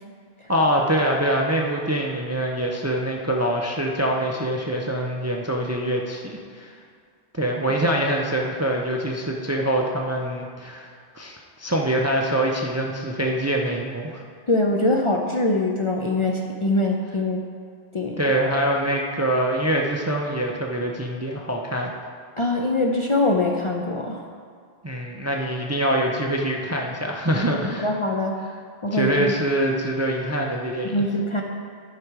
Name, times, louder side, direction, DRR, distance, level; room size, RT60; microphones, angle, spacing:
voice 1, 0.5-6.7 7.3-14.2 18.2-21.9 24.8-27.9 28.9-31.0, right 1 dB, 20° right, 0 dB, 0.5 m, -24 dB
voice 2, 14.5-17.5 17.9-18.2 22.4-24.2 27.8-28.4 28.8-29.3 30.9-31.4, left 2 dB, 40° left, 0 dB, 0.5 m, -23 dB
11.0 x 5.0 x 4.7 m, 2.1 s
omnidirectional pair, 1.0 m